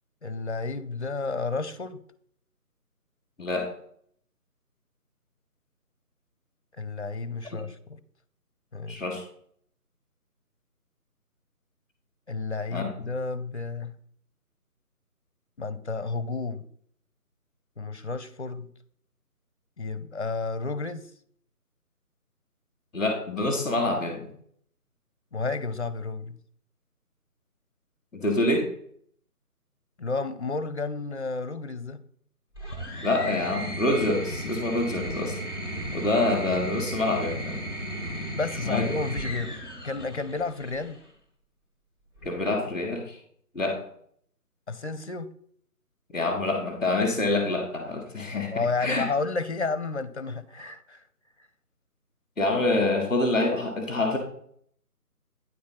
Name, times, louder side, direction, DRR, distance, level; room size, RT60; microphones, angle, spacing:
voice 1, 0.2-2.0 6.8-8.0 8.7-9.0 12.3-13.9 15.6-16.7 17.8-18.7 19.8-21.1 25.3-26.4 30.0-32.0 38.3-39.6 39.8-41.0 44.7-45.3 48.4-51.0, left 3 dB, 45° left, 0.7 m, -31 dB
voice 2, 3.4-3.7 7.5-7.6 8.9-9.2 12.7-12.9 22.9-24.3 28.1-28.7 33.0-35.4 35.9-37.7 38.6-38.9 42.2-43.2 43.5-43.8 46.1-49.1 52.4-54.2, left 2 dB, ahead, 0.8 m, -26 dB
sound 1, 32.5-41.0 42.2-42.8, right 1 dB, 15° right, 1.2 m, -35 dB
9.4 x 4.2 x 5.7 m
figure-of-eight pair, 160°, 46 cm